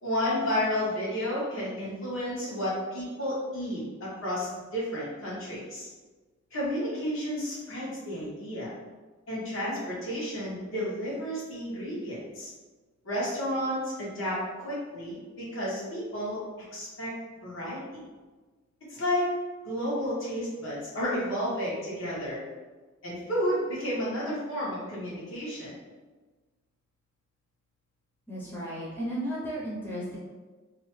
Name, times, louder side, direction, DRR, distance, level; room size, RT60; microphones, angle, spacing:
voice 1, 0.0-5.9 6.5-8.7 9.3-12.5 13.0-16.4 16.7-17.1 17.4-18.0 18.9-19.2 19.6-22.4 23.0-25.7, equal, 80° left, -8 dB, 1.1 m, -31 dB
voice 2, 28.3-30.2, equal, 10° left, -7 dB, 0.5 m, -34 dB
2.7 x 2.1 x 3.0 m, 1.3 s
head